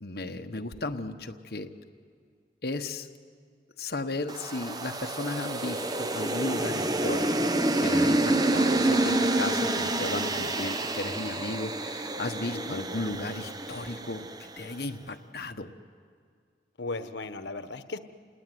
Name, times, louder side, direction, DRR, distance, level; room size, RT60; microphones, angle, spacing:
voice 1, 0.0-1.7 2.6-3.1 3.8-14.3 14.6-15.7, left 2 dB, 60° left, 5 dB, 1.2 m, -35 dB
sound 1, 4.3-14.6, right 2 dB, 20° right, 0.8 m, -28 dB
voice 2, 10.3-10.8 12.5-12.8 16.8-18.0, left 3 dB, 90° left, 10 dB, 1.2 m, -37 dB
28.5 x 19.0 x 9.5 m, 2.1 s
head